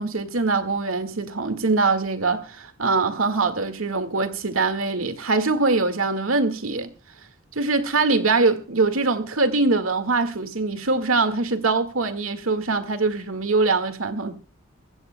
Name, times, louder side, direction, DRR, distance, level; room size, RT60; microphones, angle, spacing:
voice 1, 0.0-6.9 7.5-14.3, right 3 dB, 80° right, 1.8 m, -23 dB
23.5 x 15.5 x 2.2 m
head